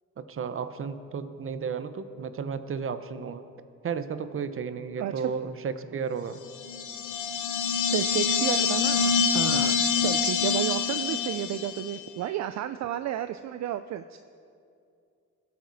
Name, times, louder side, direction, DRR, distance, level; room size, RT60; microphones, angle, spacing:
voice 1, 0.2-3.4 3.8-6.4 9.4-9.7, right 6 dB, 45° right, 10 dB, 0.9 m, -33 dB
sound 1, 6.6-12.0, left 6 dB, 80° left, 1.0 m, -26 dB
voice 2, 7.9-14.2, right 11 dB, 65° right, 11 dB, 0.5 m, -32 dB
21.5 x 8.7 x 4.1 m, 2.4 s
cardioid pair, 90°, 30 cm